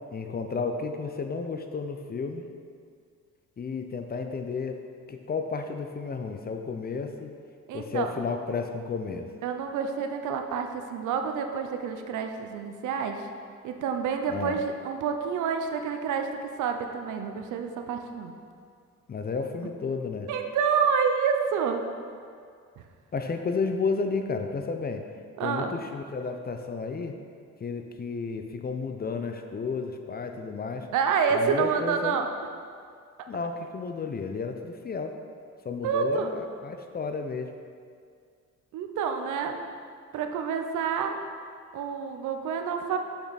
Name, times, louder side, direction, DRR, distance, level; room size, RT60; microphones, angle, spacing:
voice 1, 0.1-2.4 3.6-4.8 5.1-7.3 7.7-9.3 14.3-14.6 19.1-20.3 23.1-25.1 25.4-27.2 27.6-30.9 31.3-32.3 33.3-35.2 35.6-37.5, left 4 dB, 30° left, 6 dB, 0.6 m, -32 dB
voice 2, 7.7-8.1 9.4-13.3 13.6-16.3 16.6-18.3 20.3-21.9 22.8-22.9 25.4-25.8 30.9-32.3 35.8-36.3 38.7-39.6 40.1-41.2 41.7-43.0, right 6 dB, 80° right, 5 dB, 0.7 m, -28 dB
6.4 x 5.9 x 4.0 m, 2.2 s
cardioid pair, 90°, 30 cm